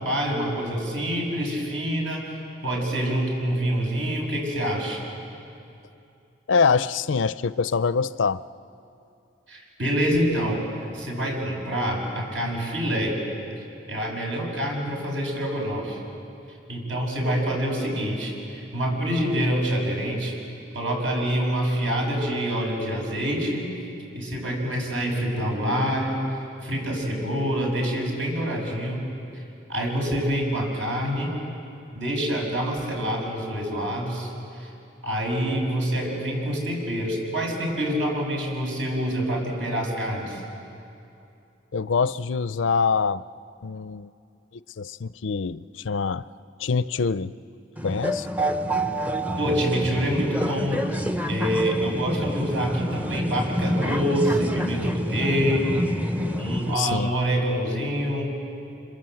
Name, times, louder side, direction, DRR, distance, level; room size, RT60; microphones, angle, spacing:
voice 1, 0.0-5.0 9.5-10.7 10.9-13.2 13.9-16.0 16.7-20.3 20.7-23.6 24.1-26.2 26.6-29.0 29.7-31.3 32.0-34.3 34.6-34.7 35.0-40.4 49.4-50.9 51.2-55.9 56.4-58.3, equal, 75° right, 0 dB, 6.7 m, -26 dB
voice 2, 6.5-8.4 41.7-43.2 43.6-44.1 44.5-46.2 46.6-47.3 47.8-48.3 56.8-57.1, left 5 dB, 85° left, 15 dB, 0.5 m, -24 dB
sound 1, 47.8-56.8, equal, 10° right, 0.6 m, -27 dB
27.0 x 26.5 x 7.8 m, 2.6 s
head